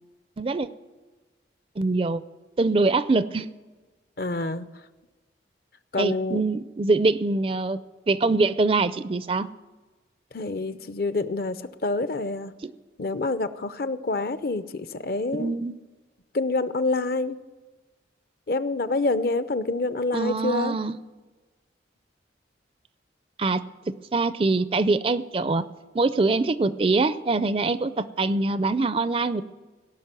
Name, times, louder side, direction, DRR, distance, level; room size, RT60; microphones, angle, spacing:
voice 1, 0.4-0.7 1.8-2.2 2.6-3.5 6.0-7.8 8.1-9.5 12.6-12.7 15.3-15.7 20.1-21.0 23.4-25.6 25.9-29.4, right 3 dB, 30° right, 14 dB, 0.4 m, -24 dB
voice 2, 4.2-4.6 5.9-6.4 10.3-12.5 13.0-15.5 16.3-17.4 18.5-20.8, left 3 dB, 55° left, 13 dB, 0.6 m, -27 dB
17.0 x 6.1 x 9.1 m, 1.3 s
head